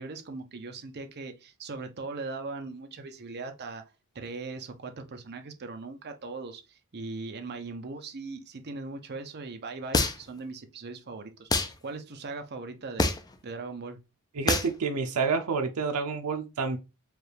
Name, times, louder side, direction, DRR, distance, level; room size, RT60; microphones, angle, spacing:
voice 1, 0.0-3.8 4.1-13.1 13.4-14.0, right 3 dB, 50° right, 0.7 m, -39 dB
sound 1, 9.9-10.4 11.5-11.7 13.0-13.3 14.5-14.7, left 3 dB, 20° left, 0.4 m, -25 dB
voice 2, 14.3-16.8, right 5 dB, 85° right, 0.5 m, -28 dB
4.6 x 2.4 x 3.2 m
head